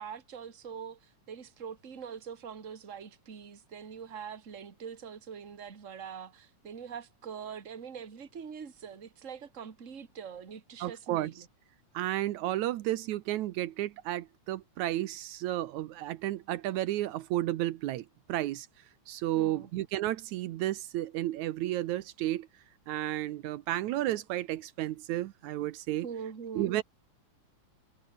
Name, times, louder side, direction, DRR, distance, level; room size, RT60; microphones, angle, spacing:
voice 1, 0.0-11.5 19.3-19.7 26.0-26.8, right 7 dB, 30° right, 2.0 m, -43 dB
voice 2, 10.8-11.3 11.9-18.7 19.1-22.5 22.9-26.1 26.6-26.8, right 14 dB, 80° right, 2.2 m, -32 dB
omnidirectional pair, 3.4 m